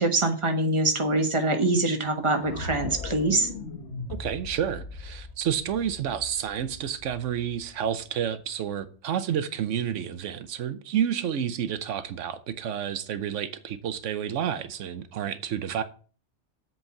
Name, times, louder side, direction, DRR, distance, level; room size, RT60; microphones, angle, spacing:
voice 1, 0.0-3.5, right 2 dB, 25° right, 1.3 m, -24 dB
sound 1, 2.4-8.5, left 3 dB, 65° left, 1.5 m, -40 dB
voice 2, 4.2-15.8, right 9 dB, 85° right, 1.1 m, -30 dB
7.9 x 4.5 x 7.0 m
omnidirectional pair, 1.2 m